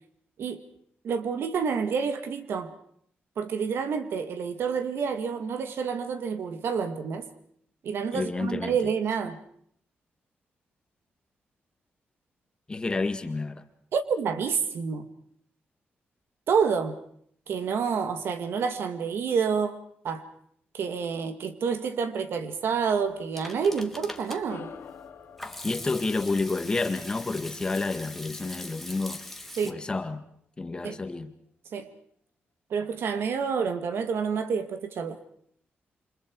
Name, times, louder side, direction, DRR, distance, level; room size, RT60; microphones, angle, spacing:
voice 1, 1.0-2.7 3.4-7.3 7.8-9.4 13.9-15.1 16.5-17.0 17.5-19.8 20.0-20.3 20.7-24.7 29.6-29.8 30.8-31.0 31.7-31.9 32.7-35.2, right 6 dB, 75° right, 2.1 m, -28 dB
voice 2, 8.1-8.8 12.7-13.6 25.6-29.2 29.6-30.2 30.6-31.3, left 3 dB, 20° left, 1.7 m, -29 dB
Hands / Sink (filling or washing), 23.0-29.7, left 1 dB, 5° left, 1.7 m, -42 dB
sound 1, 24.5-29.2, left 7 dB, 85° left, 2.5 m, -49 dB
28.5 x 26.0 x 4.7 m
wide cardioid pair, 150°, 4 cm